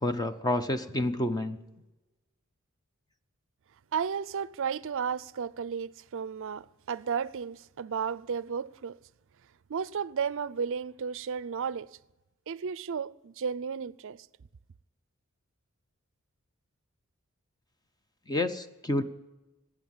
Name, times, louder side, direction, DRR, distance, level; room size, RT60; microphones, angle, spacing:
voice 1, 0.0-1.6 18.3-19.0, left 1 dB, 20° left, 0.7 m, -29 dB
voice 2, 3.9-9.0 9.7-11.9 12.5-14.3, right 6 dB, 65° right, 0.5 m, -33 dB
18.5 x 8.9 x 7.2 m
head